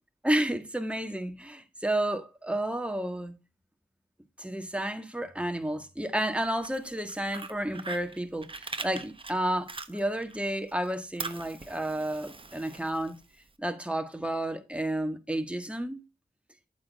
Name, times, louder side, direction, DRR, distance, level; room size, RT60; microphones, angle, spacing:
voice 1, 0.2-3.4 4.4-13.2 13.6-16.0, right 1 dB, 5° right, 1.7 m, -31 dB
Fire, 6.4-10.4 10.7-13.5, right 3 dB, 30° right, 1.0 m, -41 dB
9.4 x 8.5 x 3.6 m
cardioid pair, 55°, 17 cm